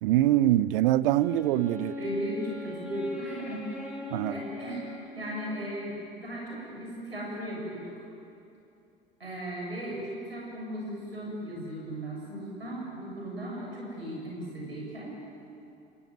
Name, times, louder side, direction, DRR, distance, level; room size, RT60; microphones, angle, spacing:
voice 1, 0.0-2.0 4.1-4.3, right 14 dB, 65° right, 0.8 m, -24 dB
Wind instrument woodwind instrument, 1.0-5.8, left 2 dB, 5° right, 6.8 m, -40 dB
voice 2, 2.0-3.8 4.3-4.9 5.1-7.9 9.2-15.1, equal, 85° right, 7.6 m, -36 dB
29.0 x 17.5 x 9.7 m
figure-of-eight pair, 65°, 30 cm